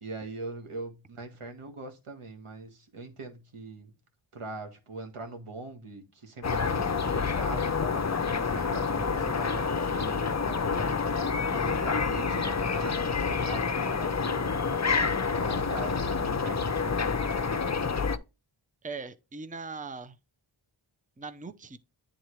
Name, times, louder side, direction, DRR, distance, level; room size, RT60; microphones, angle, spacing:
voice 1, 0.0-3.9 4.3-8.1 8.4-11.0 11.6-14.5 15.3-17.7, right 3 dB, 80° right, 1.7 m, -41 dB
sound 1, 6.4-18.2, left 5 dB, 35° left, 0.7 m, -28 dB
voice 2, 18.8-20.2 21.2-21.8, right 4 dB, 15° right, 0.6 m, -40 dB
10.5 x 3.8 x 3.1 m
wide cardioid pair, 75°, 50 cm